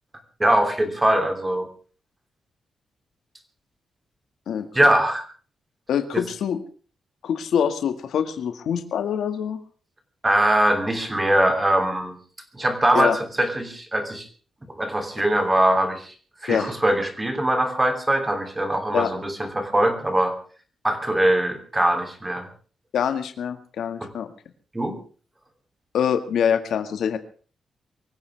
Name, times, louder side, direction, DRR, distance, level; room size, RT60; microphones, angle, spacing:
voice 1, 0.4-1.7 4.7-5.2 6.1-6.2 10.2-12.2 12.5-14.3 14.8-16.1 16.4-20.3 20.8-22.5 24.0-24.1 24.7-25.0, right 1 dB, 10° right, 7 dB, 3.1 m, -22 dB
voice 2, 5.9-6.6 7.2-9.6 12.9-13.2 16.5-16.7 18.9-19.1 22.9-24.3 25.9-27.2, left 8 dB, 80° left, 9 dB, 1.9 m, -24 dB
24.0 x 15.5 x 3.5 m, 0.41 s
wide cardioid pair, 165°, 0 cm